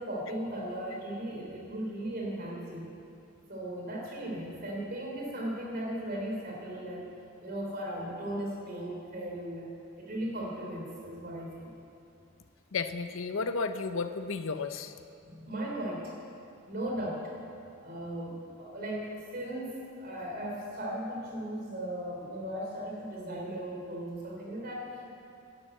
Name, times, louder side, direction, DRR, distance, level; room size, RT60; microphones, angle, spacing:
voice 1, 0.0-2.9 3.5-7.1 7.4-9.7 10.0-11.7 15.2-16.1 16.7-17.3 17.8-25.0, right 1 dB, 45° right, -2 dB, 3.4 m, -37 dB
voice 2, 12.7-14.9, left 4 dB, 65° left, 10 dB, 0.6 m, -33 dB
12.0 x 11.0 x 8.1 m, 2.6 s
head